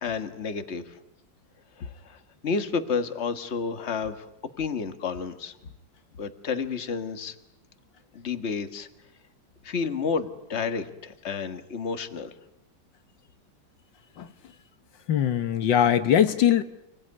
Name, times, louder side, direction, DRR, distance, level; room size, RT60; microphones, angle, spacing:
voice 1, 0.0-1.0 1.8-4.3 4.6-5.5 6.2-7.4 8.1-8.9 9.6-12.3, left 5 dB, 40° left, 9 dB, 1.7 m, -31 dB
voice 2, 15.1-16.6, left 9 dB, 90° left, 10 dB, 1.9 m, -21 dB
30.0 x 18.5 x 9.7 m, 0.86 s
omnidirectional pair, 2.0 m